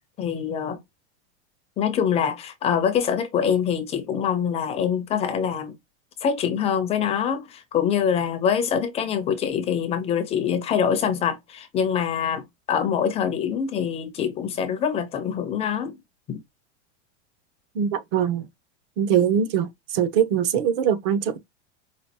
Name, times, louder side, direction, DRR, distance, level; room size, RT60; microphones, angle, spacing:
voice 1, 0.2-0.8 1.8-5.7 6.2-16.0 16.3-16.4, left 8 dB, 15° left, 0.6 m, -24 dB
voice 2, 17.7-18.5 19.0-21.4, right 8 dB, 50° right, 1.0 m, -22 dB
5.2 x 2.4 x 2.8 m
supercardioid pair, 170°, 35 cm